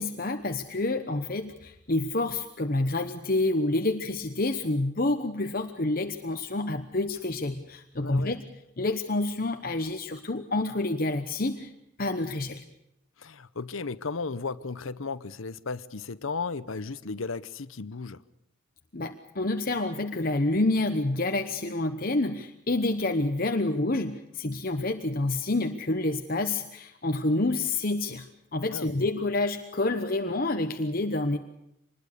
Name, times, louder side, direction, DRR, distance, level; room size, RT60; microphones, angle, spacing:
voice 1, 0.0-8.4 8.8-11.7 12.0-12.6 18.9-28.2 28.5-31.4, left 2 dB, 45° left, 1.1 m, -28 dB
voice 2, 8.0-8.4 13.2-18.2 28.7-29.1, left 4 dB, 75° left, 0.8 m, -35 dB
25.5 x 21.0 x 6.7 m
head